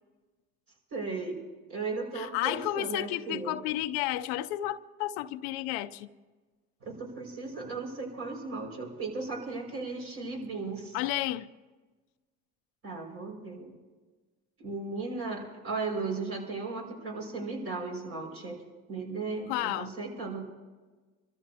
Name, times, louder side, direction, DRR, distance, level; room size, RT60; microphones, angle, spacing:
voice 1, 0.9-1.4 1.7-3.6 6.8-11.0 12.8-13.7 14.6-18.6 18.9-20.4, right 3 dB, 50° right, 5.5 m, -36 dB
voice 2, 2.1-6.1 10.9-11.5 19.5-19.9, left 15 dB, 90° left, 0.6 m, -32 dB
28.0 x 13.5 x 2.8 m
supercardioid pair, 95°, 31 cm